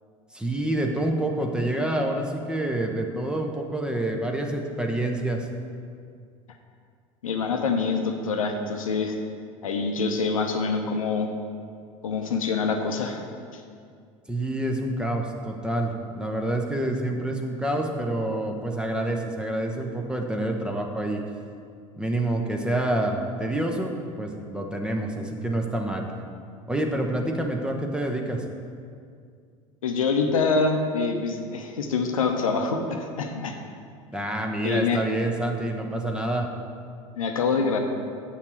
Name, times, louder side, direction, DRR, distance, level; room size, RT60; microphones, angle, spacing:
voice 1, 0.3-5.5 14.3-21.2 22.0-26.0 26.7-28.4 34.1-36.5, right 1 dB, 5° right, 2 dB, 1.0 m, -27 dB
voice 2, 7.2-9.2 9.6-11.3 12.0-13.2 29.8-33.6 34.6-35.0 37.2-37.8, left 4 dB, 70° left, 5 dB, 0.8 m, -25 dB
8.0 x 5.8 x 6.1 m, 2.2 s
figure-of-eight pair, 70°, 18 cm